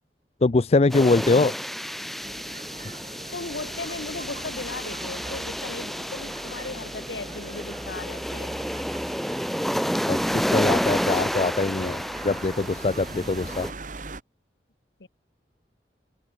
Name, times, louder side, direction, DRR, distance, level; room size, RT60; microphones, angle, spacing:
voice 1, 0.4-1.5 10.1-13.7, left 3 dB, 35° left, 0.5 m, -23 dB
sound 1, 0.9-13.7, equal, ahead, 1.7 m, -30 dB
sound 2, 2.2-14.2, right 3 dB, 45° right, 1.8 m, -43 dB
voice 2, 3.3-8.6 15.0-15.1, left 3 dB, 75° left, 1.4 m, -37 dB
head